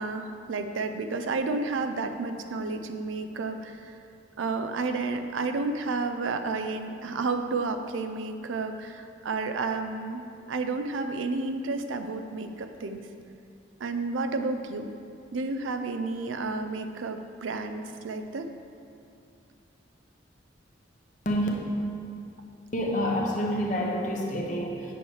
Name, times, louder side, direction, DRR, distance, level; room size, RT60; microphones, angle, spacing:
voice 1, 0.0-3.9 4.4-10.2 10.5-13.1 13.8-14.9 15.3-18.5, right 3 dB, 90° right, 7 dB, 0.5 m, -31 dB
voice 2, 22.7-24.8, equal, 40° left, -1 dB, 0.9 m, -28 dB
8.6 x 6.4 x 3.2 m, 2.5 s
head